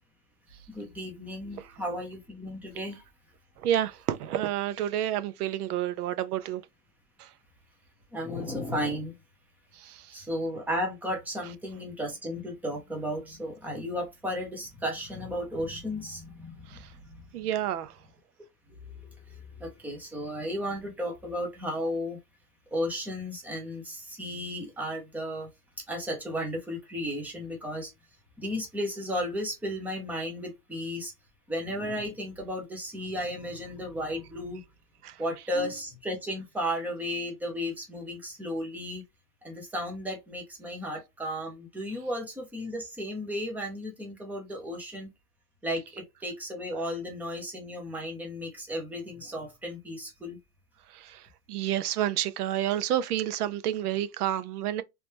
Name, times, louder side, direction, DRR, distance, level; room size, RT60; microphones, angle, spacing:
voice 1, 0.7-3.0 8.1-9.1 10.1-17.2 19.0-22.2 22.7-25.5 25.9-27.9 28.4-31.1 31.5-34.6 35.2-39.0 39.4-45.1 45.6-50.4, equal, 5° right, 0.7 m, -34 dB
voice 2, 3.6-6.6 7.2-7.3 9.8-10.1 16.7-16.8 17.3-17.9 35.0-35.1 50.9-51.2 51.5-54.8, right 11 dB, 85° right, 0.7 m, -29 dB
3.3 x 3.1 x 2.9 m
supercardioid pair, 155°, 44 cm